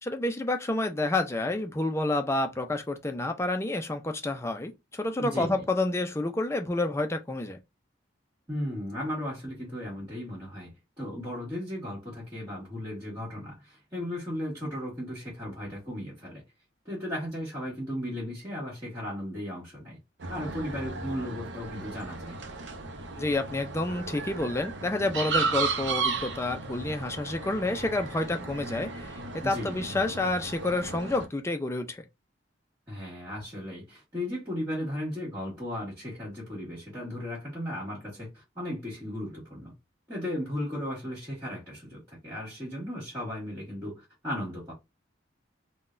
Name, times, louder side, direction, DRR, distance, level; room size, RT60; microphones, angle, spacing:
voice 1, 0.0-7.6 23.2-32.0, left 2 dB, 15° left, 0.4 m, -29 dB
voice 2, 5.2-5.6 8.5-16.4 16.8-20.0 20.3-22.4 29.4-29.9 32.9-39.7 40.1-44.7, left 1 dB, 20° right, 1.6 m, -36 dB
sound 1, 20.2-31.3, right 4 dB, 70° right, 0.7 m, -34 dB
3.7 x 2.2 x 2.5 m
head